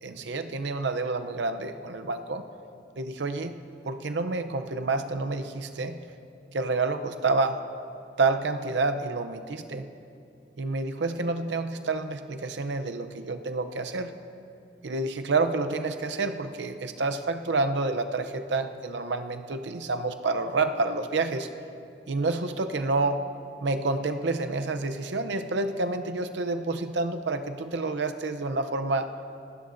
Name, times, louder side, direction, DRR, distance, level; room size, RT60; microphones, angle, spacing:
voice 1, 0.0-2.4 3.0-3.6 3.9-6.0 6.5-7.6 8.2-9.9 10.6-14.1 14.8-21.5 22.1-23.3 23.6-29.1, right 3 dB, 70° right, 8 dB, 0.6 m, -28 dB
26.5 x 12.5 x 2.6 m, 2.6 s
head